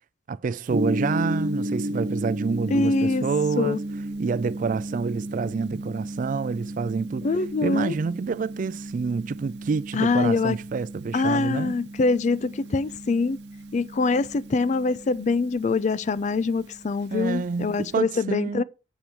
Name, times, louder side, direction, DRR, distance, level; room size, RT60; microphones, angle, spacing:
voice 1, 0.3-3.8 4.2-7.3 7.6-11.7 17.1-18.6, right 5 dB, 50° right, 0.3 m, -28 dB
Gong, 0.7-17.9, right 1 dB, 70° right, 0.9 m, -34 dB
voice 2, 2.7-3.3 3.6-3.8 7.2-7.9 9.9-10.6 11.1-13.4 13.7-18.6, left 3 dB, 45° left, 0.4 m, -24 dB
7.3 x 4.6 x 6.9 m
head